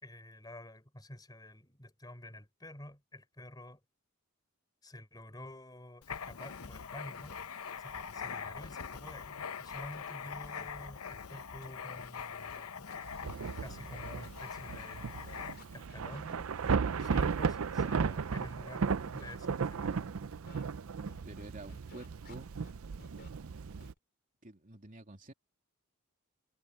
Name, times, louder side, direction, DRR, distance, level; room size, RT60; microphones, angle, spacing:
voice 1, 0.0-3.8 4.8-7.4 7.8-12.9 13.6-16.5 17.0-20.1, left 1 dB, 20° left, 4.2 m, -49 dB
Writing, 6.0-15.8, left 6 dB, 85° left, 0.8 m, -43 dB
Scratching (performance technique), 6.6-6.7 7.1-7.3 7.7-8.1 8.5-9.5 9.7-12.1 12.4-17.4 17.7-18.0 18.4-19.3 19.9-20.0 20.3-20.7 21.1-22.7 23.0-23.3 23.8-24.0, left 2 dB, 50° left, 4.0 m, -56 dB
Thunder / Rain, 13.0-23.9, right 5 dB, 70° right, 0.5 m, -35 dB
voice 2, 21.2-22.5 24.4-25.3, right 1 dB, 40° right, 3.1 m, -49 dB
head